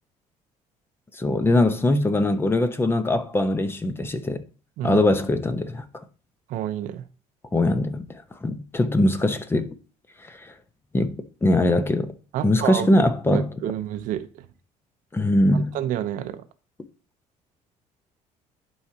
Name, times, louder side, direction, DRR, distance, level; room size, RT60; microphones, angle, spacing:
voice 1, 1.1-4.4 4.8-6.0 7.5-9.7 10.2-10.5 10.9-12.1 12.4-13.5 15.1-15.8, left 1 dB, 15° left, 0.9 m, -22 dB
voice 2, 6.5-7.0 12.3-14.3 15.5-16.4, right 12 dB, 75° right, 0.8 m, -29 dB
11.0 x 4.8 x 2.8 m
cardioid pair, 125°, 14 cm